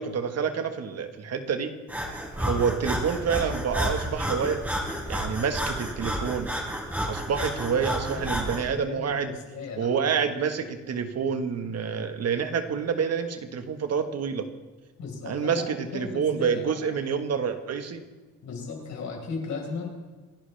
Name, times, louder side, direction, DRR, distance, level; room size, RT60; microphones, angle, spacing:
voice 1, 0.0-1.7 2.4-4.6 5.1-6.5 7.1-9.3 9.8-14.4 15.3-18.0, right 6 dB, 55° right, 7 dB, 1.6 m, -28 dB
Breathing, 1.9-8.7, equal, 5° right, 4.2 m, -31 dB
voice 2, 7.7-10.3 15.0-16.9 18.4-19.9, left 4 dB, 70° left, 0 dB, 4.9 m, -37 dB
27.0 x 11.5 x 3.5 m, 1.3 s
cardioid pair, 90°, 30 cm